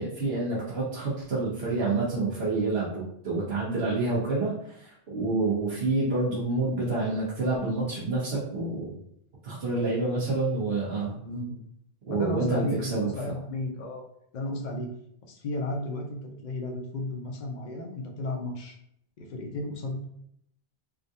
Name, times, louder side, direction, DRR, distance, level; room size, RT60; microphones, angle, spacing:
voice 1, 0.0-8.9 9.4-11.2 12.1-13.3, right 3 dB, 80° right, -7 dB, 1.1 m, -28 dB
voice 2, 11.2-11.6 12.1-14.0 14.3-14.9 15.2-18.7 19.2-20.0, left 2 dB, 55° left, 1 dB, 0.7 m, -34 dB
3.6 x 2.4 x 2.6 m, 0.72 s
omnidirectional pair, 1.0 m